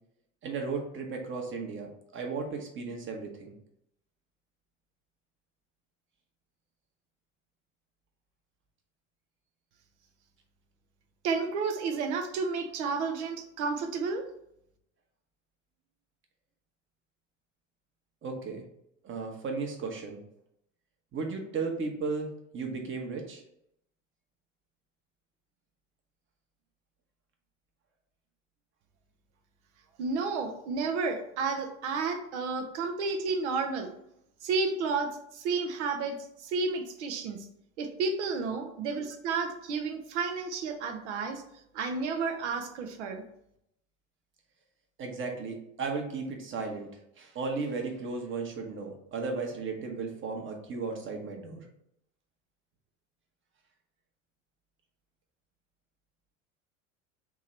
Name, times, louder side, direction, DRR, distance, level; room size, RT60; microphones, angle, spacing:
voice 1, 0.4-1.9 2.1-3.5 18.2-18.6 19.0-20.2 21.1-23.4 45.0-46.9 47.2-51.6, right 4 dB, 30° right, 2 dB, 1.2 m, -35 dB
voice 2, 11.2-14.2 30.0-33.9 34.4-37.4 37.8-41.4 41.7-43.2, right 4 dB, 65° right, 6 dB, 0.9 m, -31 dB
3.6 x 3.0 x 4.4 m, 0.76 s
hypercardioid pair, 80°, 38 cm